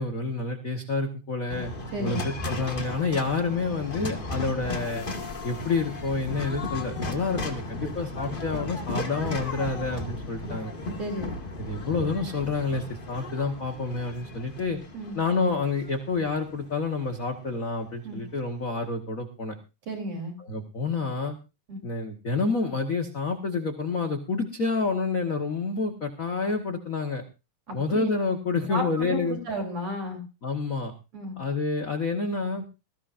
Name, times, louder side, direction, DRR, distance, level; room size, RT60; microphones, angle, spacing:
voice 1, 0.0-1.7 2.0-5.0 5.4-10.7 11.6-14.8 15.1-19.6 20.4-21.4 21.8-27.2 27.7-29.4 30.4-30.9 31.4-32.6, left 4 dB, 65° left, 3 dB, 0.8 m, -28 dB
sound 1, 1.5-17.7, left 2 dB, 35° left, 0.8 m, -35 dB
voice 2, 1.9-2.2 11.0-11.4 14.9-15.1 18.0-18.2 19.9-20.3 21.7-21.8 27.7-28.1 28.7-30.2 31.1-31.3, right 1 dB, 45° right, 2 dB, 4.4 m, -32 dB
19.5 x 14.0 x 2.6 m, 0.29 s
omnidirectional pair, 3.6 m